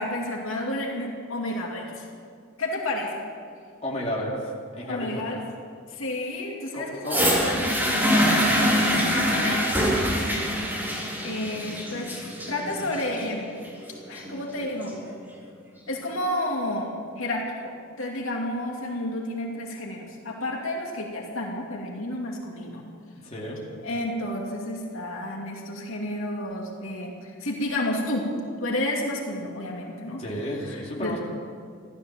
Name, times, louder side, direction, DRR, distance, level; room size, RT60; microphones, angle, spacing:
voice 1, 0.0-2.1 2.6-3.2 4.9-5.4 5.9-7.5 9.1-10.6 11.2-12.2 12.5-13.5 14.1-15.0 15.9-22.8 23.8-28.3 28.6-30.2 30.7-31.2, left 1 dB, 75° left, -1 dB, 2.6 m, -31 dB
voice 2, 3.8-5.4 6.7-7.3 8.0-9.2 23.2-23.6 30.2-31.2, equal, 30° left, -4 dB, 2.6 m, -33 dB
sound 1, 7.1-15.1 15.9-16.0, equal, 10° right, 3.6 m, -24 dB
15.0 x 13.0 x 7.4 m, 2.2 s
head